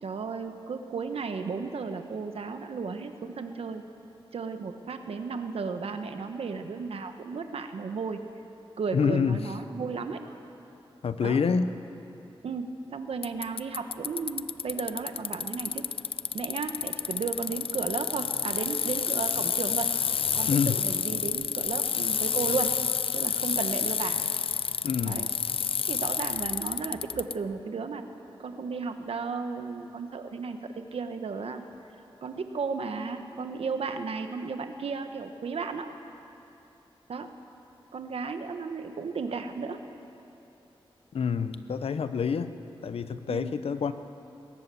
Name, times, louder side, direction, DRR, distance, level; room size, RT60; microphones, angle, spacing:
voice 1, 0.0-3.8 4.3-8.2 8.8-10.2 11.2-11.4 12.4-15.9 16.3-19.9 20.3-22.7 23.1-24.2 25.1-25.3 25.9-30.6 30.9-31.6 32.2-35.9 37.1-37.3 37.9-39.8 43.3-43.5, right 5 dB, 90° right, 7 dB, 1.3 m, -34 dB
voice 2, 8.9-9.4 11.0-11.7 20.5-20.8 24.8-25.3 41.1-42.5 42.8-43.9, left 6 dB, 90° left, 11 dB, 0.8 m, -27 dB
Bicycle, 13.2-27.3, left 7 dB, 70° left, 0.5 m, -29 dB
21.0 x 18.5 x 7.0 m, 2.9 s
wide cardioid pair, 90°, 10 cm